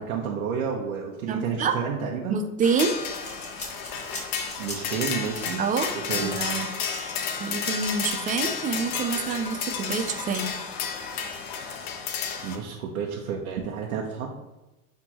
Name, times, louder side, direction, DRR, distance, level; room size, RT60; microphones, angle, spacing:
voice 1, 0.0-2.4 4.6-5.6 6.1-6.4 12.4-14.3, right 6 dB, 85° right, -1 dB, 1.1 m, -30 dB
voice 2, 1.3-1.8 2.3-3.0 5.6-5.9 6.2-6.7 7.4-10.5, right 5 dB, 20° right, 7 dB, 0.4 m, -27 dB
sound 1, 2.6-12.6, left 6 dB, 60° left, 1.1 m, -32 dB
sound 2, 3.0-5.1 5.3-5.5 5.8-8.8 9.2-10.5, left 2 dB, 25° left, 2.3 m, -42 dB
10.0 x 3.6 x 3.0 m, 1.0 s
supercardioid pair, 120°, 42 cm